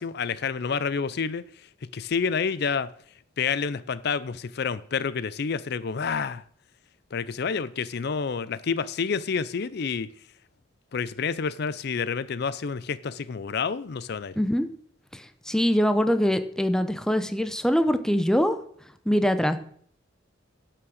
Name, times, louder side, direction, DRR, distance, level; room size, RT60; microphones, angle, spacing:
voice 1, 0.0-1.7 1.9-2.9 3.4-6.4 7.1-10.1 10.9-14.4, left 5 dB, 60° left, 0.5 m, -29 dB
voice 2, 14.4-14.7 15.5-18.6 19.1-19.6, equal, 5° left, 0.7 m, -23 dB
11.0 x 6.0 x 6.4 m
head